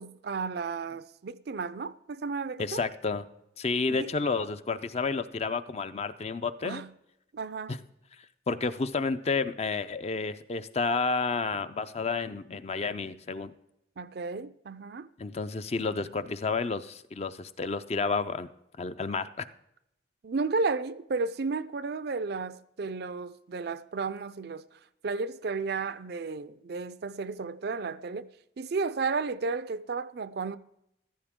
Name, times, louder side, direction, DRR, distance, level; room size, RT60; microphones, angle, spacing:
voice 1, 0.0-2.8 3.9-4.1 6.6-6.9 7.3-7.8 14.0-15.1 20.2-28.3 28.6-30.6, right 4 dB, 60° right, 0.5 m, -33 dB
voice 2, 2.6-3.2 3.6-6.8 8.5-13.5 15.2-18.5 18.8-19.5, left 4 dB, 35° left, 0.5 m, -30 dB
15.0 x 13.0 x 3.7 m
head